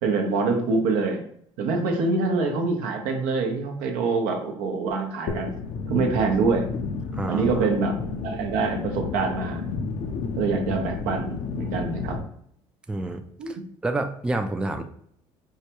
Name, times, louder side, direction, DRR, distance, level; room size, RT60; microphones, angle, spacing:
voice 1, 0.0-1.2 1.6-5.5 5.9-6.7 7.3-8.0 8.2-9.7 10.4-12.2 13.4-13.5, right 4 dB, 75° right, 3 dB, 0.8 m, -25 dB
sound 1, 5.3-12.2, left 4 dB, 55° left, 0.6 m, -31 dB
voice 2, 7.1-7.7 12.9-13.6 13.8-14.8, right 2 dB, 5° right, 6 dB, 0.4 m, -29 dB
4.6 x 2.2 x 2.9 m, 0.66 s
supercardioid pair, 80°, 13 cm